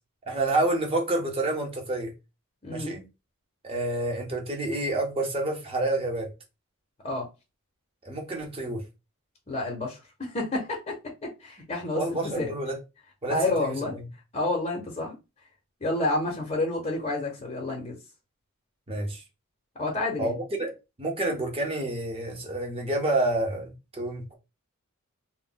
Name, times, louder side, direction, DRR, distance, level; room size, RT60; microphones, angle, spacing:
voice 1, 0.3-2.1 2.7-3.0 3.6-6.3 8.0-8.8 11.9-12.8 13.2-13.7 18.9-19.2 20.2-20.7 21.0-24.3, right 2 dB, 25° right, 0.7 m, -28 dB
voice 2, 9.5-11.0 11.2-12.5 13.3-14.0 14.3-15.2 15.8-18.0 19.8-20.3, left 2 dB, 30° left, 0.6 m, -29 dB
2.1 x 2.0 x 3.7 m
head